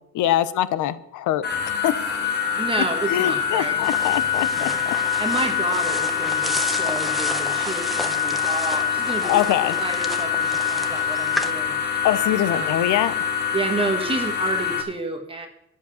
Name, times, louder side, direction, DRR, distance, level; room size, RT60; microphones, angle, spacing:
voice 1, 0.1-1.4 1.8-1.9 3.1-4.9 9.2-9.7 12.0-13.1, left 12 dB, 70° left, 15 dB, 0.8 m, -23 dB
sound 1, 1.4-14.8, left 7 dB, 30° left, 1.6 m, -25 dB
voice 2, 2.6-3.8 4.2-4.3 4.6-11.8 12.5-12.8 13.5-15.5, right 2 dB, 15° right, 4 dB, 1.3 m, -30 dB
sound 2, 3.8-11.5, equal, ahead, 0.9 m, -33 dB
10.5 x 7.6 x 7.0 m, 0.80 s
cardioid pair, 140°, 32 cm